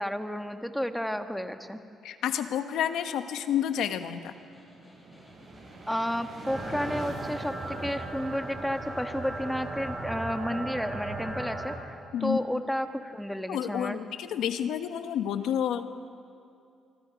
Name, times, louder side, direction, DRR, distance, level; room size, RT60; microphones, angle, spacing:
voice 1, 0.0-1.8 5.9-14.0, equal, 5° left, 7 dB, 1.4 m, -32 dB
voice 2, 2.0-4.3 12.1-12.4 13.5-15.9, left 9 dB, 85° left, 9 dB, 1.1 m, -30 dB
Snare drum, 3.8-8.3, equal, 20° left, 7.5 m, -55 dB
sound 1, 4.4-11.1, right 2 dB, 50° right, 6.7 m, -46 dB
sound 2, 6.4-11.8, right 2 dB, 30° right, 5.4 m, -36 dB
25.0 x 24.5 x 5.2 m, 2.5 s
cardioid pair, 90°, 0 cm